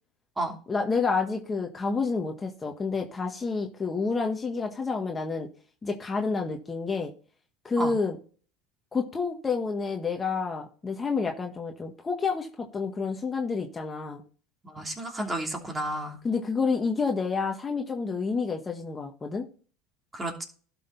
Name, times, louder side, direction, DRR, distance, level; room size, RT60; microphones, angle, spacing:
voice 1, 0.7-5.5 5.8-7.1 7.6-8.2 8.9-14.2 16.2-19.5, left 4 dB, 20° left, 3 dB, 1.6 m, -29 dB
voice 2, 14.6-16.2 20.1-20.4, right 1 dB, 15° right, 3 dB, 2.9 m, -32 dB
12.0 x 6.0 x 4.2 m, 0.40 s
supercardioid pair, 100°, 0 cm